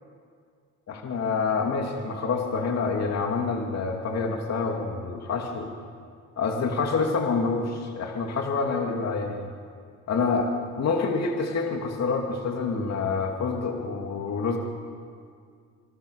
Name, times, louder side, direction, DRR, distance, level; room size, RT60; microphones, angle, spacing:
voice 1, 0.9-5.7 6.4-9.5 10.1-10.5 10.8-14.6, left 4 dB, 60° left, 2 dB, 2.7 m, -27 dB
27.5 x 25.0 x 6.6 m, 2.2 s
cardioid pair, 90°, 30 cm